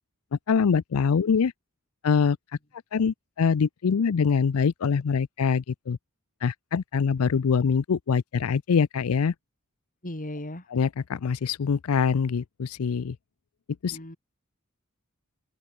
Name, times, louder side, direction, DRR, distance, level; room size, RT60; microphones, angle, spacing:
voice 1, 0.5-1.5 2.0-2.4 2.9-6.0 6.4-9.3 10.7-13.2 13.8-14.0, left 6 dB, 85° left, 0.5 m, -24 dB
voice 2, 10.0-10.6 13.9-14.2, left 1 dB, 40° left, 3.7 m, -36 dB
open air
head